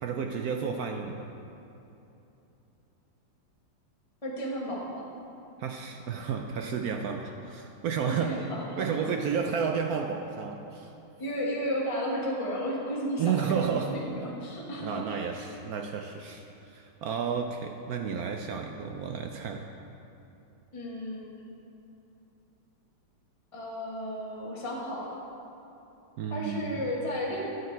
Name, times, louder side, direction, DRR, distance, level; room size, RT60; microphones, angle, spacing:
voice 1, 0.0-1.3 5.6-8.4 8.8-10.9 13.2-14.0 14.8-19.7 26.2-26.8, right 6 dB, 75° right, 4 dB, 0.8 m, -32 dB
voice 2, 4.2-5.1 8.0-9.2 11.2-15.3 20.7-21.4 23.5-25.2 26.3-27.5, equal, 20° left, -4 dB, 0.9 m, -33 dB
11.0 x 7.9 x 4.5 m, 2.9 s
omnidirectional pair, 2.1 m